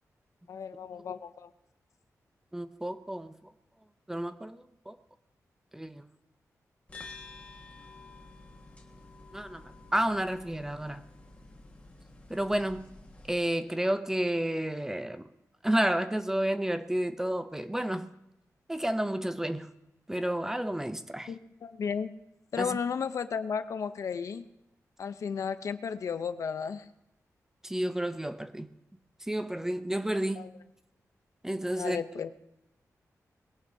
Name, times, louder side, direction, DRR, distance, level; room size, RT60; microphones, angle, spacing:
voice 1, 0.5-1.5 21.3-22.1 22.5-24.4 25.0-26.9 30.4-30.5 31.8-32.3, left 6 dB, 65° left, 0.7 m, -34 dB
voice 2, 2.5-3.5 4.1-5.0 5.7-6.1 9.3-11.0 12.3-12.9 13.3-15.3 15.6-18.1 18.7-19.7 20.1-21.3 22.6-22.8 27.6-28.7 29.2-30.5 31.4-32.0, right 1 dB, 10° right, 0.5 m, -31 dB
sound 1, 6.9-13.4, left 3 dB, 20° left, 1.6 m, -50 dB
21.0 x 16.5 x 2.7 m
wide cardioid pair, 165°, 6 cm